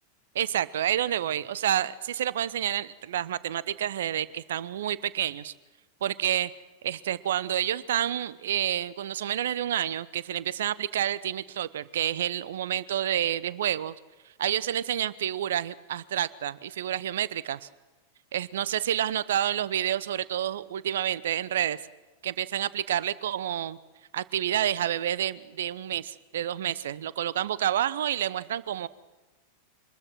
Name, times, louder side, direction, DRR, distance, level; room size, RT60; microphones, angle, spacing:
voice 1, 0.3-5.5 6.0-6.5 6.8-13.9 14.4-17.7 18.3-21.8 22.2-23.8 24.1-28.9, right 11 dB, 60° right, 19 dB, 0.8 m, -29 dB
25.0 x 21.0 x 6.2 m, 1.2 s
figure-of-eight pair, 90°, 0 cm